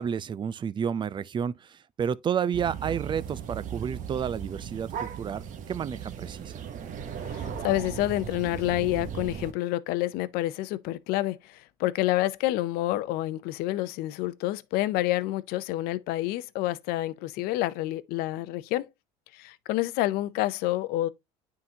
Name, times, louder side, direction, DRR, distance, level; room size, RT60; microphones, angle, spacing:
voice 1, 0.0-6.5, right 7 dB, 30° right, 0.5 m, -31 dB
sound 1, 2.5-9.5, right 8 dB, 50° right, 1.0 m, -37 dB
voice 2, 7.3-18.9 19.3-21.1, left 16 dB, 70° left, 0.6 m, -28 dB
9.6 x 3.8 x 2.8 m
supercardioid pair, 105°, 16 cm